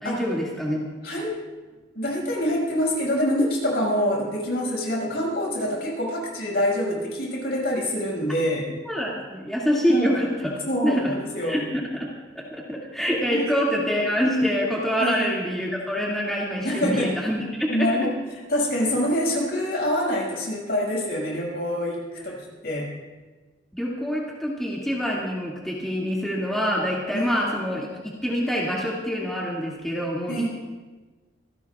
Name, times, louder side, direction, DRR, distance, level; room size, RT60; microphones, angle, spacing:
voice 1, 0.0-0.9 8.9-10.5 10.8-11.1 11.4-12.1 12.3-17.9 22.2-22.3 23.7-27.9 28.2-30.5, equal, ahead, -5 dB, 2.2 m, -26 dB
voice 2, 1.9-8.7 9.9-10.1 10.7-11.6 13.3-13.4 15.0-15.3 16.6-17.1 17.7-18.1 18.5-22.4 22.6-22.9 27.1-27.3 30.3-30.5, equal, 60° left, -2 dB, 6.0 m, -25 dB
26.0 x 17.5 x 2.4 m, 1.3 s
head